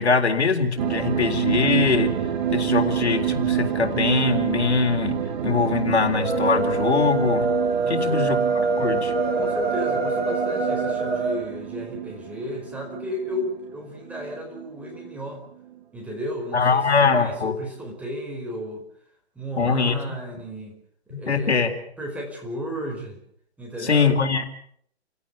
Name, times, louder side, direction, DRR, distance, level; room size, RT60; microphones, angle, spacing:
voice 1, 0.0-2.1 2.5-5.2 5.4-7.5 7.9-9.1 16.5-17.5 19.6-20.0 21.3-21.7 23.8-24.6, left 5 dB, 75° left, 5 dB, 4.0 m, -22 dB
sound 1, 0.8-15.3 15.7-15.8, right 10 dB, 45° right, 2.5 m, -28 dB
sound 2, 6.1-11.4, right 3 dB, 60° right, 7.7 m, -24 dB
voice 2, 7.8-8.2 9.4-15.4 15.9-18.8 19.3-20.8 21.1-21.6 22.0-23.2 23.6-24.2, equal, 5° right, 0 dB, 4.7 m, -34 dB
29.0 x 17.0 x 7.0 m, 0.65 s
hypercardioid pair, 145°, 33 cm